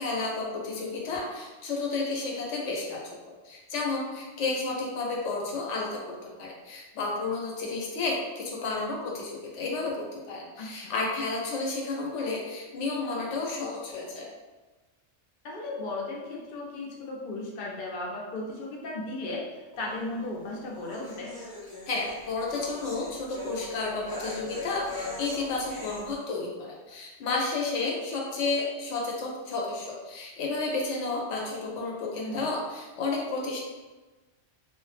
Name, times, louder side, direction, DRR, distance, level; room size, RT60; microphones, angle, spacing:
voice 1, 0.0-3.0 3.3-14.3 21.9-33.6, left 3 dB, 80° left, -2 dB, 0.9 m, -32 dB
voice 2, 10.6-10.9 15.4-21.3 32.2-32.4, left 2 dB, 55° left, -2 dB, 0.6 m, -36 dB
sound 1, 19.7-26.1, left 2 dB, 20° left, 0.8 m, -41 dB
2.4 x 2.0 x 3.1 m, 1.2 s
omnidirectional pair, 1.2 m